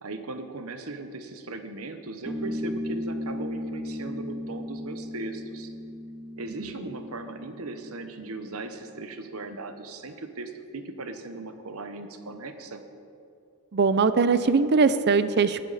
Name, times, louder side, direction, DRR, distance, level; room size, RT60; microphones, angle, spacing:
voice 1, 0.0-5.7 6.4-12.8, right 2 dB, 70° right, 8 dB, 1.1 m, -38 dB
sound 1, 2.3-9.2, left 1 dB, 5° right, 1.9 m, -36 dB
voice 2, 13.7-15.6, right 4 dB, 50° right, 13 dB, 0.5 m, -21 dB
20.5 x 11.5 x 4.1 m, 2.6 s
head